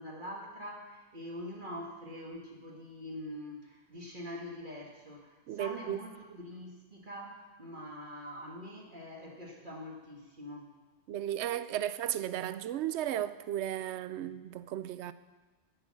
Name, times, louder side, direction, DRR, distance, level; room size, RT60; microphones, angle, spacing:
voice 1, 0.0-10.7, equal, 45° right, 1.9 m, -44 dB
voice 2, 5.5-6.0 11.1-15.1, right 11 dB, 75° right, 0.8 m, -35 dB
10.5 x 8.4 x 7.5 m
omnidirectional pair, 1.2 m